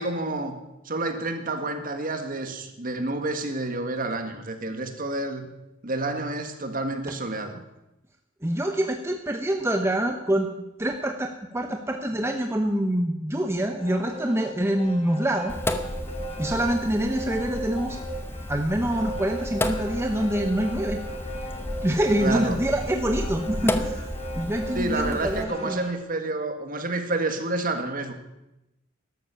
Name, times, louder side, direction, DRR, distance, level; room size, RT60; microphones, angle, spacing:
voice 1, 0.0-5.5 5.8-7.6 22.2-22.6 24.7-28.1, right 2 dB, 45° right, 6 dB, 1.7 m, -29 dB
voice 2, 8.4-10.5 10.8-15.5 16.4-18.0 18.5-21.0 21.8-24.1 24.3-25.8, right 1 dB, 15° right, 4 dB, 0.9 m, -25 dB
sound 1, 13.4-26.0, right 1 dB, 30° left, 2.2 m, -37 dB
Sink (filling or washing), 15.5-25.4, left 1 dB, 10° left, 0.8 m, -33 dB
13.0 x 12.0 x 6.9 m, 0.92 s
head